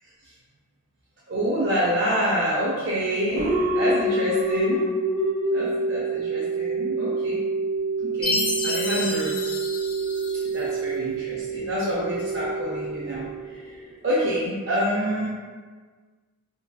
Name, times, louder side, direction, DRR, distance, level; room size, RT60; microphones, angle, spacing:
voice 1, 1.3-4.9 5.5-7.4 8.0-9.3 10.5-15.3, equal, 55° right, -8 dB, 0.4 m, -27 dB
sound 1, 3.3-14.0, right 2 dB, 80° right, 1.3 m, -27 dB
Chime, 8.2-10.7, left 2 dB, 25° left, 0.4 m, -29 dB
2.6 x 2.4 x 2.2 m, 1.5 s
head